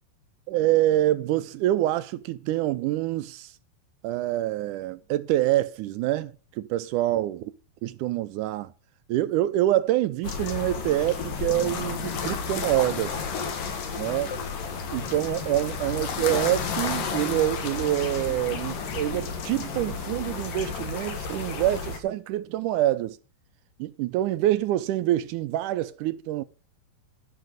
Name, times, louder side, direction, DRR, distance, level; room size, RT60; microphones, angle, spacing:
voice 1, 0.5-3.5 4.0-6.3 6.6-7.5 7.8-8.7 9.1-13.2 14.0-14.3 14.9-23.2 23.8-26.4, right 14 dB, 75° right, 2.1 m, -26 dB
sound 1, 10.2-22.0, left 5 dB, 75° left, 3.2 m, -32 dB
12.5 x 5.8 x 7.8 m
omnidirectional pair, 3.9 m